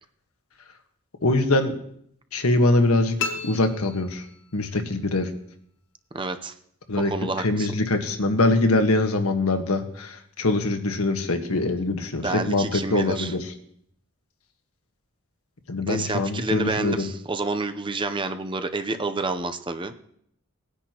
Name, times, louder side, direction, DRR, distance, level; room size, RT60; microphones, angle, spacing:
voice 1, 1.2-1.7 2.3-4.3 4.5-5.3 6.9-13.5 15.7-17.1, left 2 dB, 90° left, 5 dB, 1.5 m, -23 dB
sound 1, 3.2-4.7, left 5 dB, 60° left, 1.1 m, -33 dB
voice 2, 6.1-6.5 6.9-7.7 12.2-13.3 15.9-19.9, right 3 dB, 25° right, 8 dB, 0.7 m, -29 dB
19.5 x 10.0 x 3.0 m, 0.68 s
head